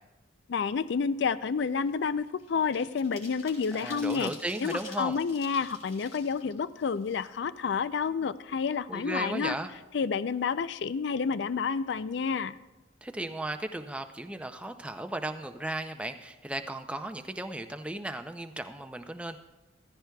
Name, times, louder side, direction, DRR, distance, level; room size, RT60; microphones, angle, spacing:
voice 1, 0.5-4.3 4.6-9.6 9.9-12.6, left 5 dB, 60° left, 15 dB, 0.4 m, -29 dB
sound 1, 0.8-0.9 1.2-7.7 8.0-8.1 8.5-9.4 9.7-9.9 10.2-10.5, left 3 dB, 40° left, 3.0 m, -50 dB
voice 2, 3.7-5.2 8.9-9.7 13.0-19.4, right 1 dB, 5° right, 7 dB, 0.4 m, -36 dB
15.0 x 14.5 x 2.3 m, 1.1 s
head